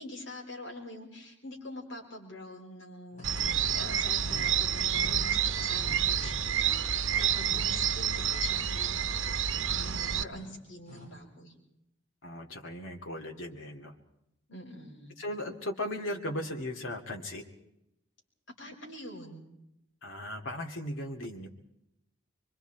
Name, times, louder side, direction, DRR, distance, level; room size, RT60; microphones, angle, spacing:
voice 1, 0.0-11.5 14.5-15.2 18.6-19.4, left 1 dB, 70° left, -1 dB, 5.9 m, -44 dB
sound 1, 3.1-11.2, left 2 dB, 40° left, 7.7 m, -48 dB
sound 2, 3.2-10.2, right 9 dB, 85° right, 0.9 m, -29 dB
voice 2, 7.4-7.7 12.2-13.9 15.2-17.4 20.0-21.5, left 1 dB, 85° left, 1 dB, 2.4 m, -37 dB
25.5 x 24.5 x 4.6 m, 0.83 s
head